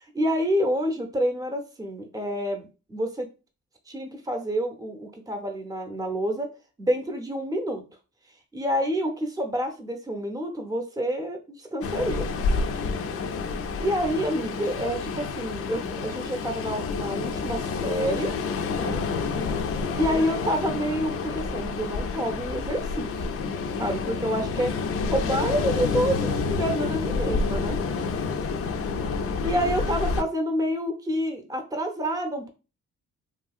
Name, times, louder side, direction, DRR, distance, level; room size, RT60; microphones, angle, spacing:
voice 1, 0.1-3.3 3.9-6.5 6.8-7.8 8.5-12.3 13.8-18.3 18.6-19.0 19.9-23.2 23.8-24.7 25.1-27.8 29.4-32.5, equal, 10° right, 4 dB, 0.6 m, -28 dB
Ocean, 11.8-30.2, left 4 dB, 50° left, 0.4 m, -29 dB
voice 2, 12.8-13.2 18.9-19.5 28.0-28.3, right 3 dB, 85° right, 1 dB, 0.7 m, -49 dB
2.8 x 2.6 x 2.4 m, 0.32 s
cardioid pair, 90°, 30 cm